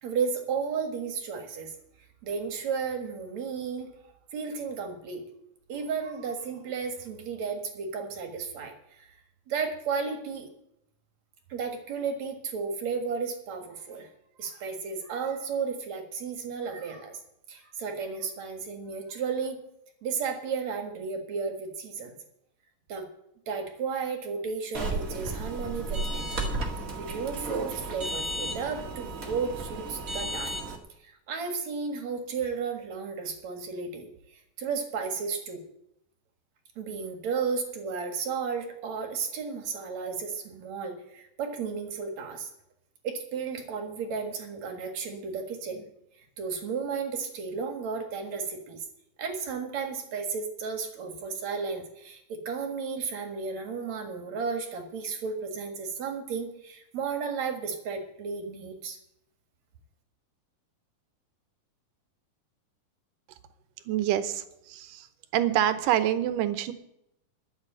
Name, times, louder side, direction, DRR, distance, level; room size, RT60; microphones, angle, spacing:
voice 1, 0.0-1.7 2.2-3.9 4.3-5.2 5.7-8.7 9.0-9.1 9.5-10.5 11.5-14.1 14.4-17.2 17.5-19.6 20.0-22.1 22.9-23.1 23.5-26.5 27.0-30.6 31.0-34.1 34.6-35.6 36.8-42.5 43.0-45.9 46.4-48.8 49.2-59.0, right 5 dB, 60° right, 4 dB, 2.8 m, -33 dB
sound 1, 24.7-30.8, right 2 dB, 30° right, 1.7 m, -33 dB
voice 2, 63.9-65.1 65.3-66.7, right 11 dB, 80° right, 11 dB, 2.4 m, -26 dB
12.0 x 7.6 x 8.8 m, 0.79 s
omnidirectional pair, 3.9 m